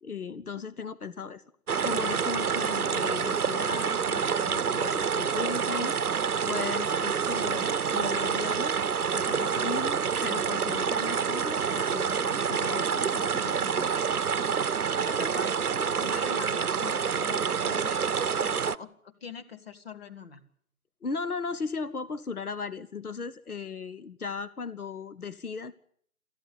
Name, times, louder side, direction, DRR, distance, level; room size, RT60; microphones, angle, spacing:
voice 1, 0.0-1.4 1.8-8.8 9.1-13.9 21.0-25.7, left 5 dB, 85° left, 15 dB, 1.1 m, -37 dB
sound 1, 1.7-18.8, right 6 dB, 85° right, 0.8 m, -27 dB
voice 2, 14.9-20.4, left 5 dB, 45° left, 7 dB, 1.7 m, -43 dB
19.0 x 14.0 x 9.9 m, 0.63 s
figure-of-eight pair, 160°, 43 cm